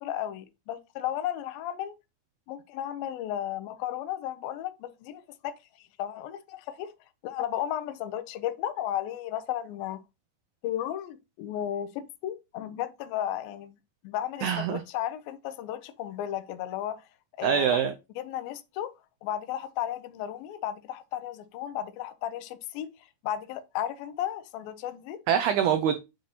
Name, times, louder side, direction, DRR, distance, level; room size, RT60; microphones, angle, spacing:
voice 1, 0.0-1.9 2.5-5.5 6.0-6.9 7.2-10.0 10.6-13.8 14.0-17.0 17.4-17.8 18.2-18.9 19.2-22.9 23.2-25.2, left 11 dB, 80° left, 2.4 m, -34 dB
voice 2, 14.4-14.8 17.4-17.9 25.3-26.0, right 8 dB, 90° right, 1.7 m, -24 dB
9.4 x 4.2 x 2.8 m
omnidirectional pair, 4.2 m